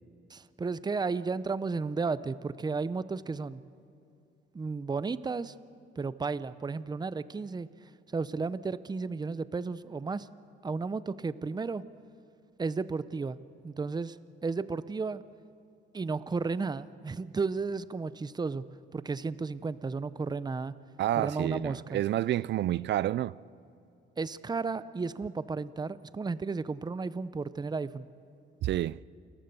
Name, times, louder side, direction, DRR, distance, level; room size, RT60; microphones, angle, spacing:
voice 1, 0.3-3.6 4.5-5.5 6.0-7.7 8.1-10.3 10.6-11.8 12.6-13.4 13.6-14.2 14.4-15.2 15.9-20.7 21.2-22.0 24.2-28.1, right 4 dB, 20° right, 0.6 m, -33 dB
voice 2, 21.0-23.4 28.6-29.0, right 13 dB, 60° right, 0.4 m, -29 dB
29.5 x 14.5 x 6.9 m
cardioid pair, 90°, 20 cm